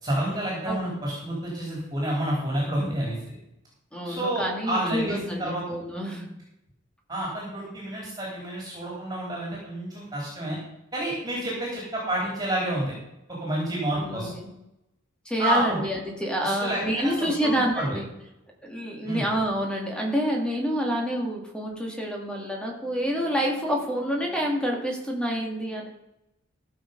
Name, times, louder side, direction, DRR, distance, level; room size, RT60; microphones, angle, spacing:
voice 1, 0.0-3.2 4.0-5.6 7.1-10.6 10.9-12.9 13.3-14.3 15.4-15.8 16.4-18.0 19.0-19.3, right 1 dB, 20° right, -4 dB, 3.6 m, -29 dB
voice 2, 0.7-1.0 3.9-6.3 13.9-14.5 15.3-18.1 18.6-25.9, equal, 5° left, 0 dB, 2.1 m, -28 dB
15.0 x 6.7 x 5.3 m, 0.87 s
head